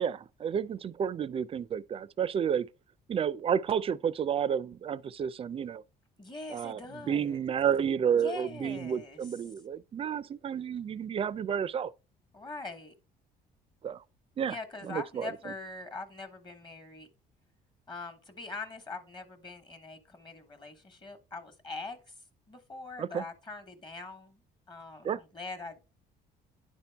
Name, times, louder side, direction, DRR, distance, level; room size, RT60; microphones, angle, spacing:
voice 1, 0.0-2.7 3.1-5.8 6.5-6.8 7.1-11.9 13.8-14.0 14.4-14.6 14.8-15.3 23.0-23.2 25.0-25.2, right 8 dB, 35° right, 0.4 m, -31 dB
voice 2, 6.2-7.4 8.1-9.3 12.3-12.9 14.4-17.1 17.9-22.1 22.5-24.4 24.7-25.9, left 3 dB, 25° left, 1.2 m, -43 dB
10.0 x 4.5 x 3.4 m
cardioid pair, 110°, 17 cm